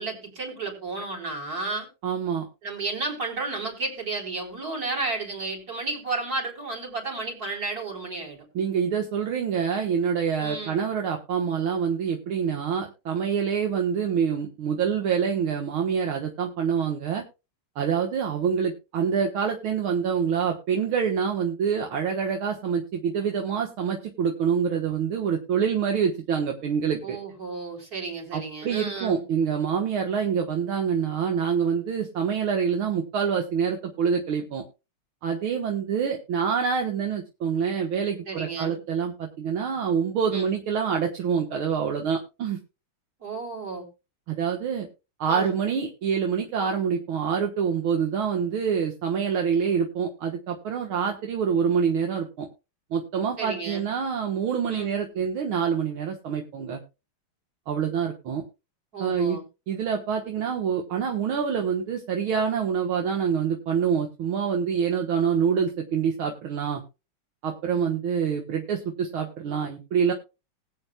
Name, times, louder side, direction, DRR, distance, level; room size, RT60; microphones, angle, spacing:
voice 1, 0.0-1.9 2.6-8.4 10.4-10.8 27.0-29.2 38.3-38.8 40.3-40.5 43.2-43.9 45.3-45.6 53.4-53.9 54.7-54.9 58.9-59.4, right 3 dB, 40° right, 0 dB, 4.5 m, -32 dB
voice 2, 2.0-2.5 8.6-17.2 17.8-27.2 28.3-34.6 35.2-42.6 44.3-44.9 45.2-52.5 52.9-56.8 57.7-58.4 59.0-59.4 59.7-66.8 67.4-70.1, right 7 dB, 70° right, 3 dB, 2.1 m, -26 dB
20.5 x 8.2 x 2.3 m, 0.28 s
omnidirectional pair, 2.4 m